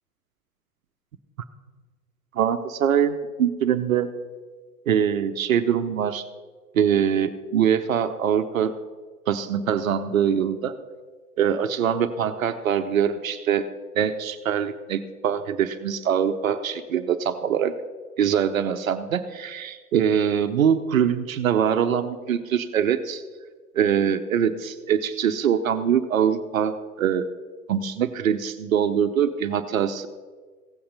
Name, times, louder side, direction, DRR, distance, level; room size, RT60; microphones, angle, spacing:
voice 1, 2.3-4.1 4.9-6.2 6.7-8.7 9.3-10.7 11.4-13.7 14.0-17.7 18.2-23.2 23.7-27.3 27.7-30.1, right 8 dB, 55° right, 9 dB, 0.8 m, -23 dB
16.0 x 8.6 x 5.4 m, 1.4 s
figure-of-eight pair, 100°, 48 cm